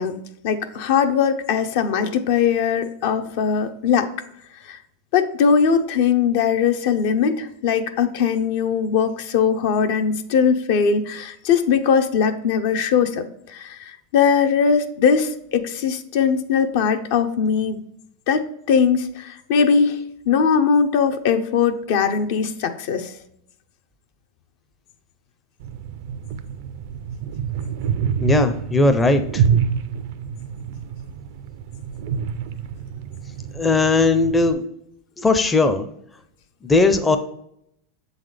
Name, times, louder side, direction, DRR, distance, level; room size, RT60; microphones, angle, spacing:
voice 1, 0.0-4.1 4.7-4.8 5.1-17.8 18.3-23.1, left 6 dB, 65° left, 8 dB, 0.7 m, -20 dB
sound 1, 25.6-34.5, right 8 dB, 65° right, 0.4 m, -27 dB
voice 2, 28.2-29.4 33.5-34.6 35.2-35.9 36.6-37.2, left 3 dB, 10° left, 7 dB, 0.5 m, -18 dB
7.2 x 4.0 x 3.3 m, 0.75 s
supercardioid pair, 130°, 0 cm